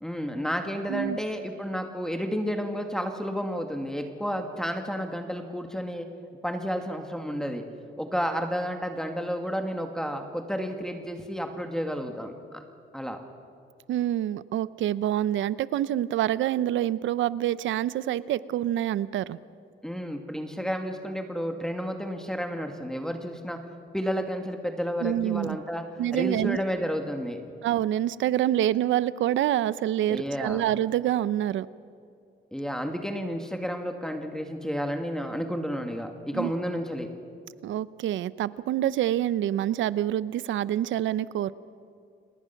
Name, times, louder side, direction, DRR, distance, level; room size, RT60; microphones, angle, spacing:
voice 1, 0.0-6.1 6.4-7.6 8.0-12.6 12.9-13.2 19.8-23.6 23.9-25.8 26.1-27.4 30.1-30.6 32.5-37.1, equal, 5° left, 4 dB, 2.1 m, -31 dB
voice 2, 13.9-19.4 25.0-25.6 26.0-26.6 27.6-31.7 36.3-36.5 37.6-41.5, right 12 dB, 75° right, 17 dB, 0.7 m, -26 dB
29.5 x 19.5 x 5.9 m, 2.4 s
cardioid pair, 90°, 20 cm